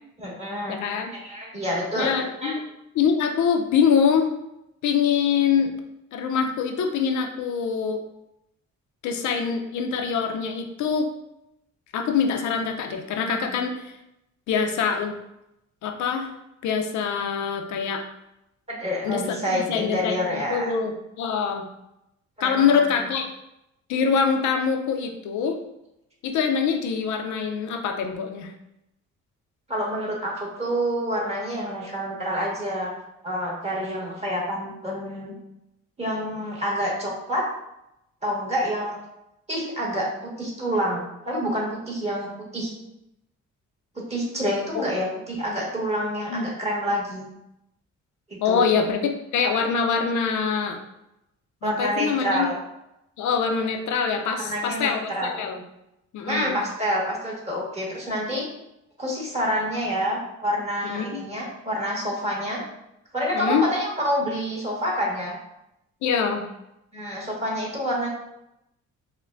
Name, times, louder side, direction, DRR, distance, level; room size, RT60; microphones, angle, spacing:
voice 1, 0.2-0.8 1.1-2.1 2.4-2.6 18.7-20.7 22.4-22.9 29.7-32.9 33.2-35.3 36.0-37.5 38.2-39.0 39.5-42.7 43.9-47.3 48.3-48.6 51.6-52.6 54.4-55.4 56.3-58.5 59.0-62.6 63.1-65.3 66.9-68.1, equal, 20° right, -3 dB, 1.4 m, -27 dB
voice 2, 0.7-1.1 1.9-2.6 2.9-4.3 4.8-5.7 6.1-8.0 9.0-11.1 11.9-14.0 14.5-15.1 15.8-16.3 16.6-18.0 19.0-21.6 22.4-23.3 23.9-25.6 26.2-28.5 44.7-44.9 46.3-46.5 48.4-50.8 51.6-52.5 53.2-55.6 56.1-56.6 60.8-61.2 63.3-63.7 66.0-66.5, left 6 dB, 75° left, 4 dB, 0.5 m, -24 dB
5.5 x 2.2 x 2.4 m, 0.85 s
cardioid pair, 90°, 30 cm